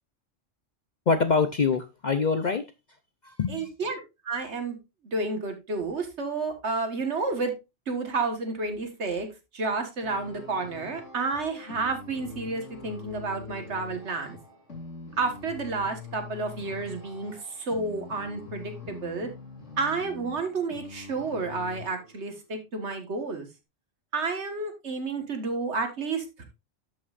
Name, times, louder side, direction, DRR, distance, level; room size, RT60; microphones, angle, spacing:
voice 1, 1.1-2.6 3.2-3.7, left 5 dB, 50° left, 9 dB, 0.6 m, -25 dB
voice 2, 3.5-4.8 5.0-7.5 7.9-9.3 9.5-14.4 15.2-19.3 19.8-23.5 24.1-26.4, right 3 dB, 65° right, 6 dB, 1.7 m, -30 dB
sound 1, 10.0-22.4, left 4 dB, 70° left, 3.0 m, -44 dB
13.0 x 5.5 x 2.5 m, 0.25 s
omnidirectional pair, 1.3 m